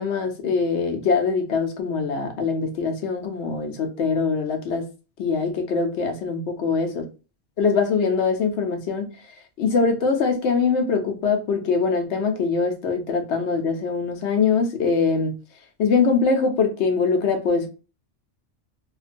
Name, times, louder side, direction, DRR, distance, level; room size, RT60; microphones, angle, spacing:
voice 1, 0.0-4.9 5.2-7.0 7.6-9.1 9.6-15.4 15.8-17.7, left 5 dB, 75° left, 0.9 m, -23 dB
2.5 x 2.2 x 2.5 m
omnidirectional pair, 1.2 m